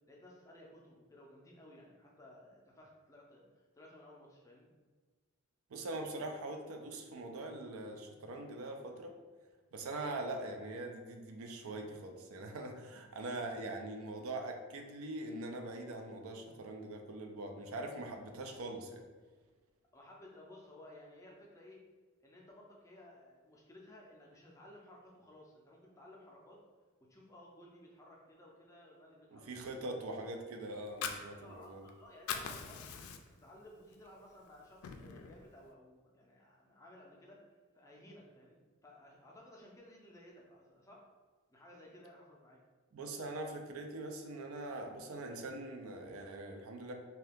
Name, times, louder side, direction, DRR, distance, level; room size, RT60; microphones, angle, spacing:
voice 1, 0.1-4.7 9.7-9.9 19.9-21.8 22.2-26.6 27.1-29.5 31.4-41.1 41.5-42.6, left 1 dB, 15° left, -2 dB, 0.4 m, -57 dB
voice 2, 5.7-9.1 9.7-19.0 29.3-31.9 42.9-46.9, right 2 dB, 85° right, 4 dB, 0.4 m, -42 dB
Fire, 30.7-31.9 32.1-33.5 33.9-34.1 34.5-35.4, left 6 dB, 90° left, 0.3 m, -41 dB
2.7 x 2.3 x 3.4 m, 1.4 s
head